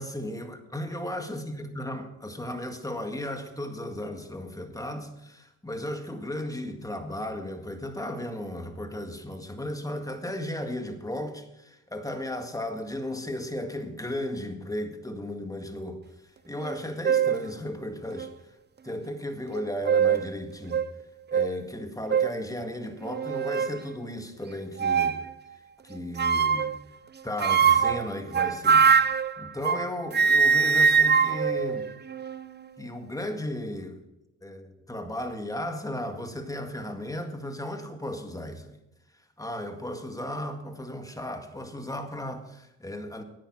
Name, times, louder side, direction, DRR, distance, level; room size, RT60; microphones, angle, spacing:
voice 1, 0.0-16.0 16.5-18.3 18.8-20.8 21.3-25.2 25.8-26.7 27.2-31.9 32.8-34.0 34.4-38.8 39.4-43.2, left 1 dB, 10° left, 1.9 m, -35 dB
sound 1, 16.6-16.7 17.0-17.4 18.2-18.3 19.5-20.3 20.7-20.9 21.3-21.5 22.1-22.4 23.0-23.8 24.8-25.2 26.2-26.8 27.4-29.9 30.1-32.5, right 6 dB, 30° right, 0.6 m, -22 dB
10.5 x 9.1 x 5.9 m
supercardioid pair, 60°, 37 cm